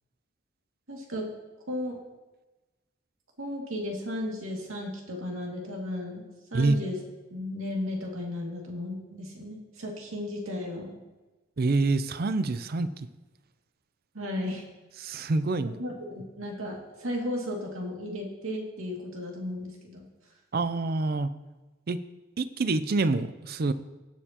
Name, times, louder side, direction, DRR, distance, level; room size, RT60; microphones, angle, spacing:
voice 1, 0.9-1.3 1.7-2.0 3.4-7.0 7.3-11.0 14.1-14.7 15.6-20.1, left 1 dB, 85° right, -1 dB, 2.3 m, -35 dB
voice 2, 11.6-13.1 15.0-15.7 20.5-21.3 21.9-22.0 22.4-23.7, right 3 dB, 50° right, 13 dB, 0.5 m, -26 dB
17.0 x 6.6 x 2.9 m, 1.1 s
head